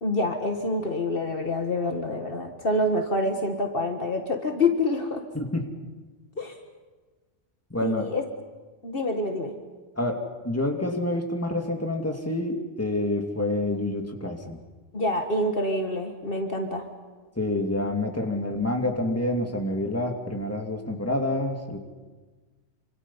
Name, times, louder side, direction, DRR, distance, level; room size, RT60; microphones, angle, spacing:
voice 1, 0.0-5.2 6.4-6.6 7.8-8.2 8.8-9.5 14.9-16.9, left 2 dB, 55° left, 4 dB, 1.9 m, -27 dB
voice 2, 5.3-5.7 7.7-8.1 10.0-14.6 17.4-21.8, left 1 dB, 10° left, 3 dB, 2.5 m, -28 dB
27.5 x 26.5 x 5.7 m, 1.3 s
omnidirectional pair, 1.2 m